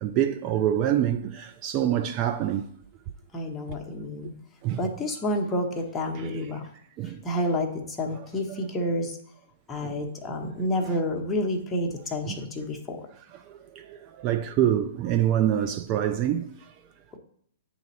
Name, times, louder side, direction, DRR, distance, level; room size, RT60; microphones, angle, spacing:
voice 1, 0.0-2.7 4.6-4.8 7.0-7.2 9.8-10.0 10.3-10.5 12.3-12.4 13.5-16.5, right 11 dB, 30° right, 0.3 m, -26 dB
voice 2, 3.3-4.4 4.8-6.7 7.0-9.2 9.7-13.1 17.1-17.2, left 1 dB, 15° left, 1.0 m, -29 dB
9.2 x 4.1 x 2.8 m
figure-of-eight pair, 115°, 0 cm